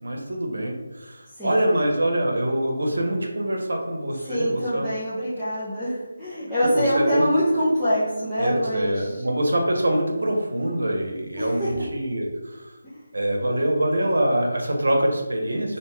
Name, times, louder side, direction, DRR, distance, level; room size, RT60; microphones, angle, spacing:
voice 1, 0.0-4.9 6.7-7.3 8.4-12.7 13.1-15.8, right 1 dB, 90° right, 1 dB, 0.7 m, -24 dB
voice 2, 1.3-1.6 4.2-9.2 11.4-11.9 12.8-13.1, equal, 5° left, -17 dB, 0.4 m, -25 dB
2.7 x 2.3 x 3.0 m, 1.1 s
figure-of-eight pair, 175°, 0 cm